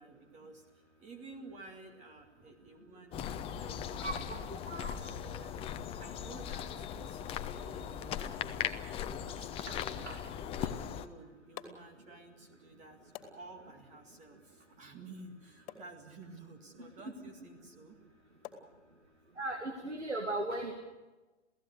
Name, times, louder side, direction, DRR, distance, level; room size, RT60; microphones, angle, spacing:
voice 1, 0.0-4.2 4.6-5.5 6.0-10.1 10.5-18.0, right 3 dB, 20° right, 5 dB, 2.0 m, -53 dB
sound 1, 3.1-11.1, left 9 dB, 15° left, 0.9 m, -39 dB
voice 2, 4.0-5.0 9.7-10.2 16.8-17.3 19.4-20.7, right 2 dB, 80° right, 4 dB, 2.3 m, -39 dB
sound 2, 7.4-19.4, left 9 dB, 35° left, 2.6 m, -55 dB
29.0 x 17.0 x 6.6 m, 1.1 s
figure-of-eight pair, 115°, 34 cm